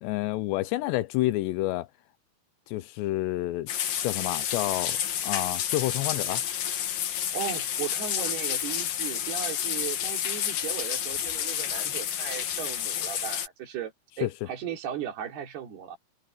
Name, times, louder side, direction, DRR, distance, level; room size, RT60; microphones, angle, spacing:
voice 1, 0.0-1.9 2.7-3.7 4.0-5.0 5.2-6.4 14.2-14.3, left 17 dB, 80° left, 2.6 m, -29 dB
sound 1, 3.7-13.5, left 9 dB, 55° left, 2.9 m, -30 dB
voice 2, 7.3-13.9 14.2-16.0, right 9 dB, 60° right, 5.3 m, -36 dB
omnidirectional pair, 5.5 m